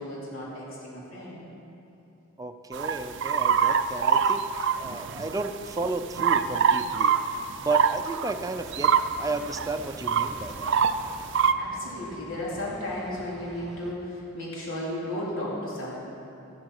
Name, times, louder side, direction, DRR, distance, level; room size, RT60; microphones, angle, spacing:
voice 1, 0.0-1.4 11.6-16.0, left 1 dB, 85° left, -6 dB, 3.3 m, -34 dB
voice 2, 2.4-7.2 7.6-10.8, right 3 dB, 15° right, 7 dB, 0.6 m, -33 dB
sound 1, 2.7-5.5 5.8-11.5, right 7 dB, 60° right, 0.5 m, -24 dB
sound 2, 8.5-13.9, equal, ahead, 1.7 m, -47 dB
14.5 x 12.0 x 4.8 m, 2.8 s
head